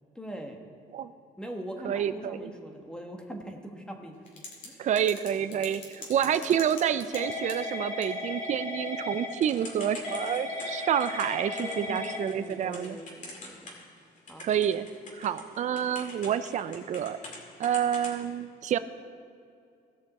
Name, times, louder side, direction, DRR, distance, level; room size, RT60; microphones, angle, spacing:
voice 1, 0.1-0.6 1.4-4.8 5.5-5.7 6.2-6.4 11.6-13.7 14.3-14.5, equal, 5° left, 3 dB, 1.3 m, -42 dB
voice 2, 1.8-2.5 4.8-13.0 14.4-14.9 15.1-17.2 17.6-18.8, right 9 dB, 45° right, 13 dB, 0.5 m, -28 dB
Typing / Telephone, 4.3-4.7 5.0-14.0 14.3-17.4 17.6-18.2, left 2 dB, 50° left, 2.4 m, -37 dB
17.0 x 6.3 x 4.2 m, 2.4 s
cardioid pair, 110°, 17 cm